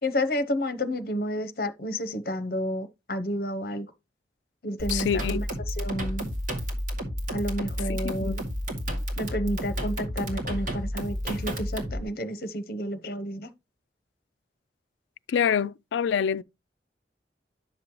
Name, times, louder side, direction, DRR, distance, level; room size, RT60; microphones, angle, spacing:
voice 1, 0.0-3.9 4.6-6.3 7.3-8.4 9.2-13.5, equal, 55° left, 0.8 m, -31 dB
sound 1, 4.8-12.0, equal, 45° right, 2.2 m, -31 dB
voice 2, 4.9-5.4 7.8-8.4 15.3-16.4, left 7 dB, 90° left, 0.3 m, -26 dB
9.9 x 6.2 x 3.0 m
head